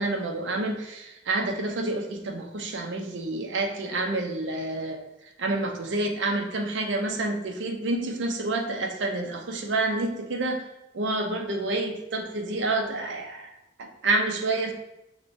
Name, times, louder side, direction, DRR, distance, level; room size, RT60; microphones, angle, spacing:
voice 1, 0.0-5.0 5.4-10.6 10.9-13.5 13.8-14.7, right 2 dB, 75° right, 3 dB, 0.5 m, -28 dB
6.0 x 2.2 x 2.6 m, 0.95 s
head